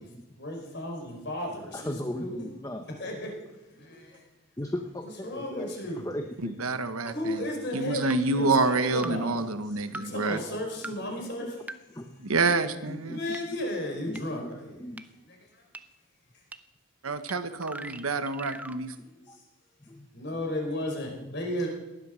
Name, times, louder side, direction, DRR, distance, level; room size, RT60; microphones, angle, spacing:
voice 1, 0.4-1.9 2.2-2.5 3.0-3.3 3.7-4.2 5.2-6.1 7.1-9.4 10.0-11.6 13.1-14.8 15.3-15.6 18.2-18.7 19.0-19.4 20.1-21.7, left 1 dB, 50° left, 1 dB, 4.5 m, -34 dB
voice 2, 1.7-2.9 4.6-5.7 6.0-6.5 7.1-7.2 11.4-11.5 11.9-12.4 12.9-13.4 14.1-14.5 14.8-15.0 19.3-19.4 19.9-20.1, left 1 dB, 15° left, 5 dB, 0.8 m, -37 dB
voice 3, 6.4-7.4 7.7-10.4 12.2-13.2 17.0-18.9, right 3 dB, 90° right, 11 dB, 1.1 m, -27 dB
sound 1, 7.1-7.2 8.1-8.2 9.0-9.1 9.9-10.0 10.8-10.9 11.7-11.8 12.5-12.6 13.3-13.4 14.2-14.3 15.0-15.1 15.7-15.8 16.5-16.6 17.3-17.4 17.6-18.8, right 2 dB, 5° right, 0.5 m, -40 dB
18.5 x 11.5 x 6.3 m, 1.0 s
head